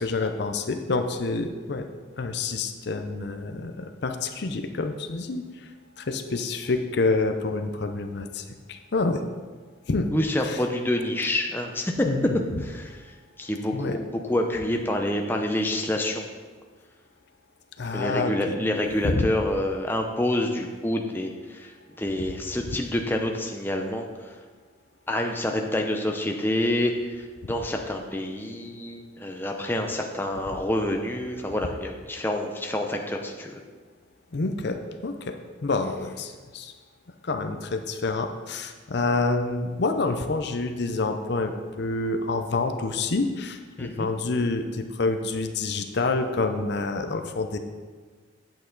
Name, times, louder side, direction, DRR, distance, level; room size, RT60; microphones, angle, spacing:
voice 1, 0.0-1.8 2.2-5.7 6.0-9.2 9.9-10.1 10.4-10.6 12.0-12.4 13.7-14.0 17.8-18.3 19.0-19.3 34.3-36.7 37.2-47.6, left 3 dB, 55° left, 6 dB, 0.6 m, -28 dB
voice 2, 10.1-12.1 12.6-13.0 13.4-16.2 17.9-24.1 25.1-26.9 27.2-33.5 43.8-44.1, left 1 dB, 10° left, 2 dB, 0.6 m, -27 dB
8.8 x 8.2 x 3.9 m, 1.4 s
head